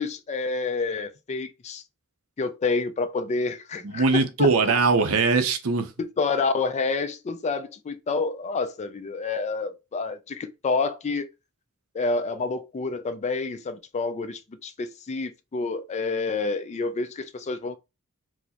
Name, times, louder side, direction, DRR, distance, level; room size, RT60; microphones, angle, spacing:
voice 1, 0.0-1.8 2.4-4.8 6.0-11.3 11.9-17.8, left 4 dB, 30° left, 0.4 m, -28 dB
voice 2, 3.8-5.9, right 4 dB, 75° right, 0.6 m, -21 dB
4.6 x 2.0 x 2.8 m
head